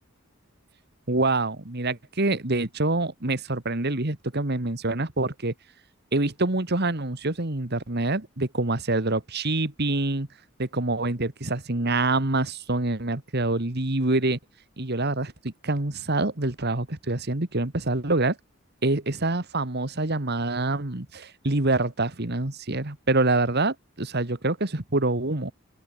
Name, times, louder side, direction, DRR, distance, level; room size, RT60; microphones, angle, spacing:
voice 1, 1.1-5.5 6.1-10.3 10.6-14.4 14.8-18.4 18.8-25.5, right 2 dB, 50° right, 2.0 m, -26 dB
open air
head